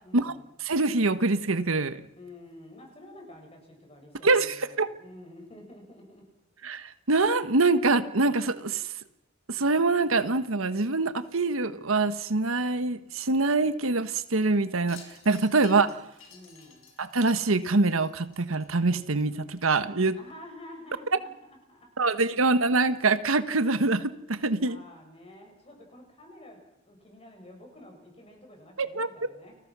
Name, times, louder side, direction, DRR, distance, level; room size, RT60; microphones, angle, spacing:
voice 1, 0.0-0.5 2.2-6.3 6.6-6.7 15.6-15.9 16.3-16.9 20.2-22.1 24.6-29.6, left 1 dB, 30° left, 2 dB, 7.4 m, -49 dB
voice 2, 0.6-2.0 4.2-4.9 6.6-8.8 9.5-15.9 17.0-20.1 22.0-24.8 28.8-29.3, right 3 dB, 90° right, 12 dB, 1.3 m, -25 dB
Wind chime, 14.8-19.5, left 6 dB, 85° left, 6.1 m, -53 dB
30.0 x 20.5 x 6.2 m, 0.85 s
head